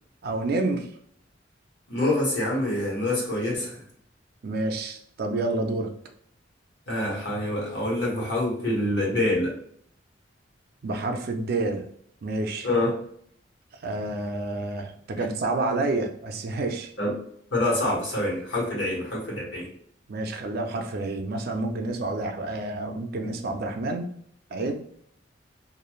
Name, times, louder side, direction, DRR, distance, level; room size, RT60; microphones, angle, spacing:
voice 1, 0.2-0.9 4.4-5.9 10.8-11.9 12.2-12.7 13.8-16.9 20.1-24.1 24.5-24.7, right 2 dB, 55° right, 5 dB, 0.4 m, -29 dB
voice 2, 1.9-3.8 6.9-9.5 12.6-12.9 15.2-15.3 17.0-17.1 17.5-19.7, left 1 dB, 75° left, -3 dB, 1.3 m, -26 dB
3.1 x 2.5 x 2.3 m, 0.64 s
head